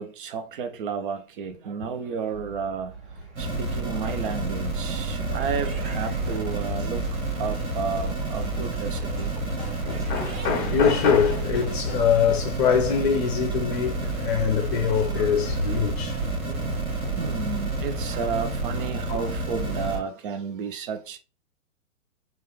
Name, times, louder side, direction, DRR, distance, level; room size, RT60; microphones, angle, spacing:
voice 1, 0.0-2.9 3.4-9.3 14.9-15.0 16.4-21.2, right 6 dB, 40° right, 0.7 m, -32 dB
sound 1, 1.9-12.5, equal, ahead, 0.8 m, -49 dB
sound 2, 2.3-19.8, right 4 dB, 25° right, 1.2 m, -41 dB
sound 3, 3.4-20.0, right 2 dB, 75° right, 1.6 m, -29 dB
voice 2, 9.8-16.2 17.0-17.1 19.1-19.3, left 7 dB, 35° left, 0.7 m, -24 dB
3.8 x 2.4 x 3.3 m
figure-of-eight pair, 120°, 41 cm